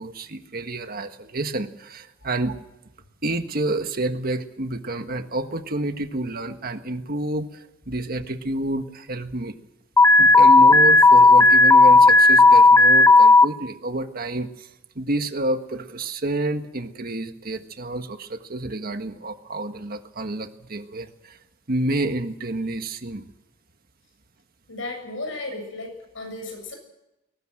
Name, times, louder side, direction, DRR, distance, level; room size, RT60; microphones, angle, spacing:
voice 1, 0.0-2.6 3.2-9.6 10.2-14.7 14.9-21.4 21.7-23.2, right 2 dB, 50° right, 7 dB, 1.6 m, -29 dB
Alarm, 10.0-13.4, left 3 dB, 15° left, 0.7 m, -12 dB
voice 2, 24.7-26.8, left 2 dB, 75° left, 4 dB, 7.5 m, -34 dB
22.0 x 19.0 x 7.8 m, 0.92 s
head